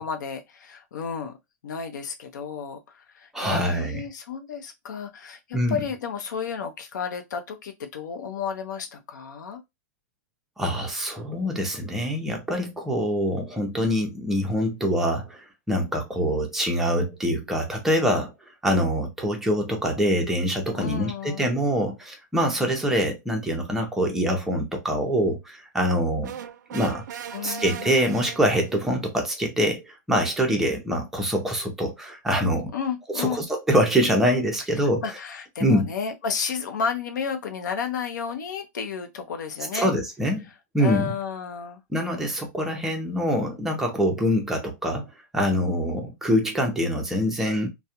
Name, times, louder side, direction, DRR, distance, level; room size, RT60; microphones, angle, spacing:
voice 1, 0.0-1.4 1.6-9.6 20.8-21.4 27.3-27.9 32.7-33.4 35.0-39.9 40.8-41.8, left 6 dB, 75° left, 0.6 m, -32 dB
voice 2, 3.3-4.0 5.5-5.8 10.6-15.4 15.7-18.3 18.6-26.3 26.7-27.0 27.4-32.7 33.1-35.0 35.6-35.9 39.7-40.5 40.7-41.1 41.9-45.1 45.3-47.7, equal, 5° right, 0.5 m, -24 dB
sound 1, 26.2-28.8, right 9 dB, 70° right, 0.4 m, -38 dB
2.3 x 2.0 x 2.8 m
hypercardioid pair, 155°, 10 cm